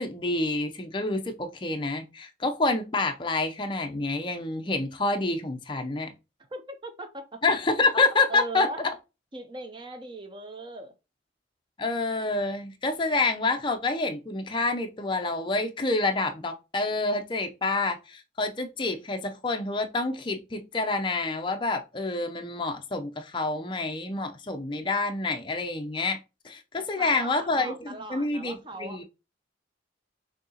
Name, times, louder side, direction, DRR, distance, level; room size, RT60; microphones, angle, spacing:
voice 1, 0.0-6.1 7.4-8.7 11.8-26.2 26.4-29.0, left 3 dB, 25° left, 0.5 m, -28 dB
voice 2, 6.5-7.4 8.3-8.9 9.3-10.9 26.8-29.0, right 2 dB, 25° right, 0.6 m, -39 dB
6.3 x 2.8 x 2.8 m
head